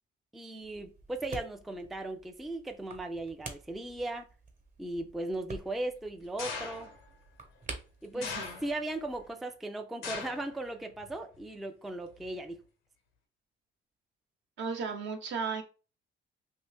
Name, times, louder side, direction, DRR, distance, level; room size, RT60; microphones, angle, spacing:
voice 1, 0.3-4.3 4.8-6.9 8.0-8.4 8.6-12.6, right 2 dB, ahead, 0.3 m, -37 dB
sound 1, 0.6-9.3, right 3 dB, 40° right, 0.9 m, -49 dB
sound 2, 6.4-7.1 8.2-9.0 10.0-10.5 10.9-11.4 12.2-12.3, left 5 dB, 90° left, 0.8 m, -40 dB
voice 2, 8.1-8.6 14.6-15.6, right 5 dB, 65° right, 0.8 m, -35 dB
2.7 x 2.6 x 3.3 m
cardioid pair, 90°, 20 cm